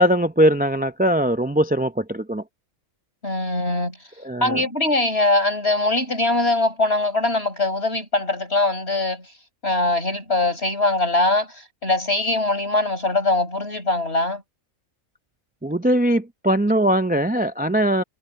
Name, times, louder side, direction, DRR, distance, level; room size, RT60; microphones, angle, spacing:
voice 1, 0.0-2.4 4.2-4.6 15.6-18.0, equal, 10° right, 0.4 m, -20 dB
voice 2, 3.2-4.0 4.4-9.3 9.6-14.4, left 2 dB, 50° left, 6.6 m, -22 dB
omnidirectional pair, 1.4 m